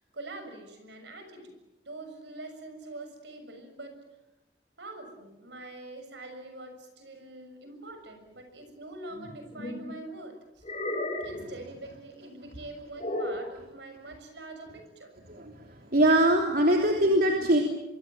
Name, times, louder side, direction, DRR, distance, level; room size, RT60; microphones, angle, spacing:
voice 1, 0.0-1.5 1.8-4.0 4.8-10.6 11.2-15.1 16.5-16.8, right 2 dB, 75° right, 6 dB, 6.6 m, -44 dB
sound 1, 9.1-9.9 10.6-11.5 13.0-13.5, left 1 dB, 40° left, 6.5 m, -34 dB
voice 2, 15.9-17.6, right 1 dB, 55° right, 1 dB, 3.2 m, -22 dB
26.0 x 24.0 x 7.6 m, 0.95 s
head